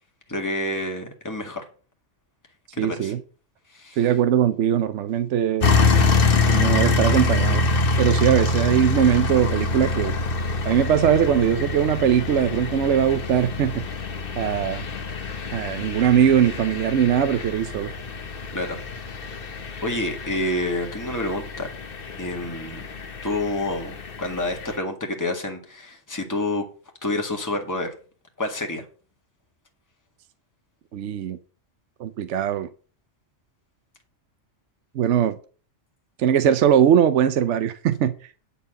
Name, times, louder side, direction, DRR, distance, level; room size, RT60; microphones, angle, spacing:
voice 1, 0.3-1.6 2.7-3.1 3.7-4.1 18.5-18.8 19.2-19.4 19.8-21.7 22.1-22.9 23.2-26.7 27.0-27.9 28.4-28.9, left 2 dB, 15° left, 2 dB, 1.8 m, -28 dB
voice 2, 2.8-3.2 4.0-5.7 6.5-7.6 8.0-10.1 10.6-13.9 14.3-14.8 15.5-17.9 30.9-31.4 32.0-32.7 34.9-35.4 36.2-38.1, right 9 dB, 80° right, 12 dB, 1.0 m, -20 dB
sound 1, 5.6-24.8, left 3 dB, 50° left, 1.2 m, -25 dB
10.0 x 4.5 x 7.5 m, 0.39 s
omnidirectional pair, 1.2 m